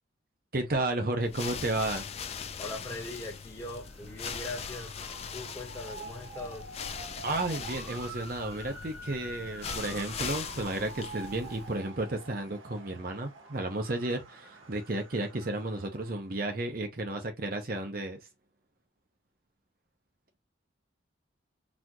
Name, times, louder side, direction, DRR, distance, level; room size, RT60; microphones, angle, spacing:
voice 1, 0.5-2.1 7.2-18.2, right 2 dB, 50° right, 0.8 m, -32 dB
sound 1, 1.2-11.8, left 6 dB, 30° left, 0.3 m, -41 dB
voice 2, 2.6-4.9 5.3-6.7, left 2 dB, 15° left, 1.3 m, -40 dB
Motor vehicle (road) / Siren, 3.6-16.3, right 3 dB, 90° right, 1.2 m, -47 dB
4.1 x 2.5 x 2.9 m
head